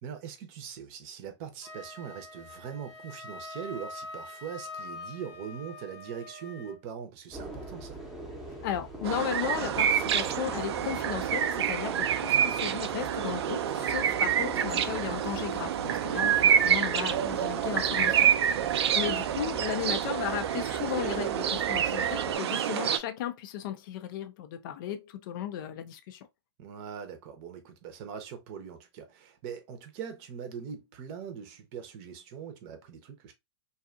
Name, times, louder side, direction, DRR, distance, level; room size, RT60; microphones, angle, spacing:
voice 1, 0.0-8.0 15.9-16.1 18.4-18.9 26.6-33.3, right 7 dB, 35° right, 0.7 m, -41 dB
Wind instrument woodwind instrument, 1.6-6.8, left 2 dB, 70° left, 0.8 m, -44 dB
sound 1, 7.3-22.4, right 1 dB, ahead, 0.7 m, -42 dB
voice 2, 8.6-18.6 18.9-26.2, left 10 dB, 50° left, 0.4 m, -35 dB
sound 2, 9.0-23.0, right 9 dB, 70° right, 0.4 m, -27 dB
2.6 x 2.3 x 2.4 m
hypercardioid pair, 125°, 15 cm